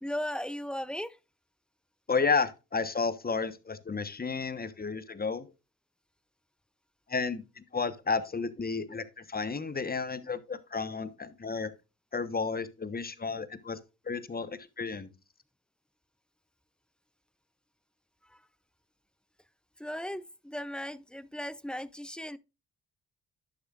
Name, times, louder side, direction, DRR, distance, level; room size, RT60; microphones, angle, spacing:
voice 1, 0.0-1.2 18.3-18.4 19.8-22.4, equal, 5° left, 0.5 m, -37 dB
voice 2, 2.1-5.5 7.1-11.7 12.1-13.8 14.1-15.1, left 4 dB, 25° left, 1.1 m, -32 dB
11.0 x 7.1 x 2.4 m
supercardioid pair, 55°, 37 cm